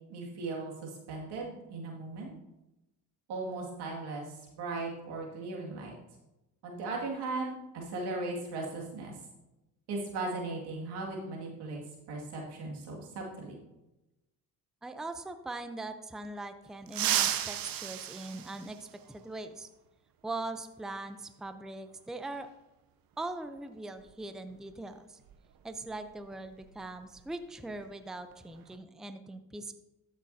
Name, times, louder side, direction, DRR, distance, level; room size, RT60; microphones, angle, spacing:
voice 1, 0.1-2.3 3.3-6.0 6.6-9.2 9.9-13.6, right 3 dB, 80° right, -1 dB, 2.2 m, -38 dB
voice 2, 14.8-19.7 20.2-22.5 23.2-25.2 25.6-29.7, right 2 dB, ahead, 9 dB, 0.6 m, -41 dB
sound 1, 16.9-19.3 20.9-21.0 22.3-22.4 24.0-24.1 24.5-24.7 25.2-27.4 27.6-27.9 28.3-28.8, right 11 dB, 60° right, 0.8 m, -34 dB
13.5 x 6.6 x 2.7 m, 0.98 s
supercardioid pair, 75°, 39 cm